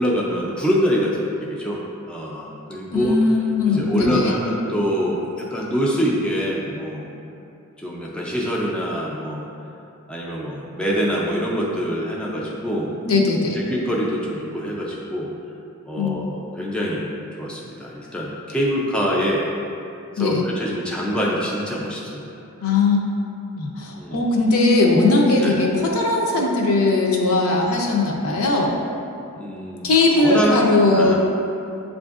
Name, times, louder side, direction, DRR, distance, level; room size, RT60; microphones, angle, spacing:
voice 1, 0.0-1.8 2.0-3.2 3.7-7.1 7.8-9.5 10.1-12.9 13.6-15.3 15.9-17.1 17.4-19.4 20.2-22.2 24.0-24.2 25.4-25.6 29.4-29.9 30.2-30.6 30.9-31.1, equal, 5° left, -5 dB, 0.3 m, -24 dB
voice 2, 2.9-4.3 13.1-13.6 16.0-16.1 20.2-20.5 22.6-23.0 23.6-28.7 29.8-31.1, left 3 dB, 70° left, -2 dB, 0.6 m, -19 dB
7.4 x 2.5 x 2.4 m, 2.7 s
head